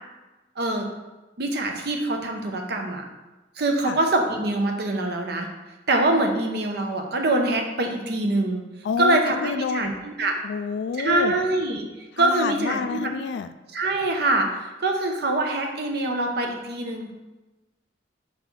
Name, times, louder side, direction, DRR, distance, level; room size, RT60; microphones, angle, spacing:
voice 1, 0.6-0.9 1.4-3.0 3.6-5.5 5.9-8.6 9.0-10.4 11.0-11.8 12.2-13.1 13.7-17.1, right 2 dB, 65° right, 3 dB, 0.8 m, -24 dB
voice 2, 8.8-9.9 10.4-11.3 12.2-13.5, left 6 dB, 70° left, 11 dB, 0.3 m, -28 dB
4.6 x 4.1 x 5.4 m, 1.1 s
head